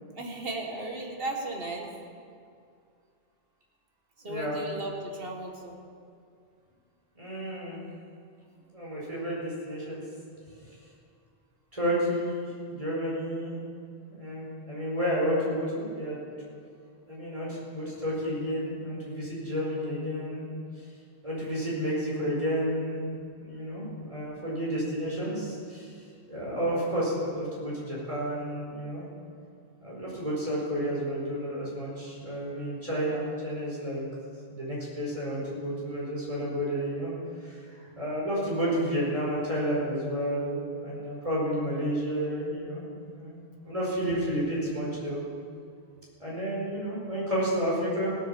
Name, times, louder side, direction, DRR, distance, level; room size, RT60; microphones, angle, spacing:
voice 1, 0.2-1.9 4.2-5.8, right 2 dB, 60° right, 1 dB, 2.0 m, -35 dB
voice 2, 4.2-4.6 7.1-7.8 8.7-10.0 11.7-13.5 14.1-16.2 17.1-20.5 21.2-23.0 23.4-25.9 26.3-29.1 29.8-34.0 34.5-37.1 37.4-43.4 43.6-45.2 46.2-48.2, equal, 30° right, -6 dB, 4.9 m, -31 dB
17.5 x 8.5 x 7.0 m, 2.3 s
omnidirectional pair, 1.1 m